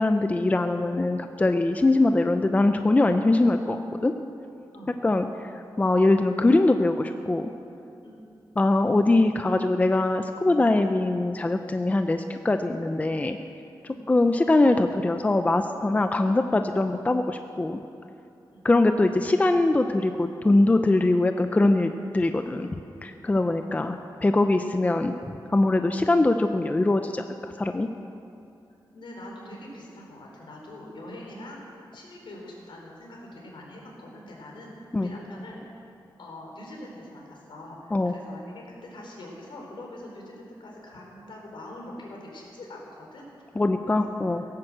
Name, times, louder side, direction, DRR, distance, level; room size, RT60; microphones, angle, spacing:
voice 1, 0.0-4.1 5.0-5.3 5.8-7.5 8.6-13.4 14.1-17.8 18.6-22.7 23.0-25.1 25.5-27.9 34.9-35.1 37.9-38.1 43.6-44.4, left 2 dB, 15° left, 7 dB, 0.5 m, -22 dB
voice 2, 28.9-31.6 31.9-35.6 36.2-43.4 43.9-44.5, left 1 dB, 75° left, -2 dB, 4.2 m, -43 dB
17.0 x 10.5 x 7.7 m, 2.6 s
wide cardioid pair, 160°, 9 cm